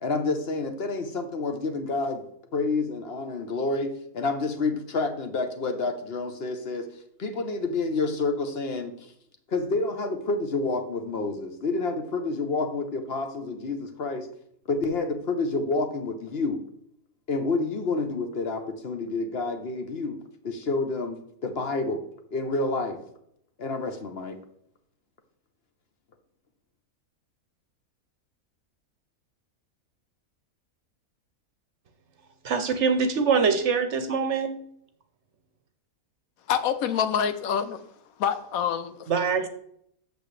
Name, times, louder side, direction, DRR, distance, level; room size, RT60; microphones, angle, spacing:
voice 1, 0.0-2.2 2.5-6.9 7.2-9.1 9.5-14.3 14.7-16.6 17.3-20.2 20.4-22.0 22.3-23.0 23.6-24.4, left 3 dB, 50° left, 7 dB, 0.9 m, -29 dB
voice 2, 32.4-34.6 39.1-39.5, right 5 dB, 60° right, 9 dB, 1.0 m, -24 dB
voice 3, 36.5-37.8 38.2-39.1, left 8 dB, 75° left, 11 dB, 1.1 m, -26 dB
8.2 x 6.7 x 3.2 m, 0.70 s
omnidirectional pair, 1.5 m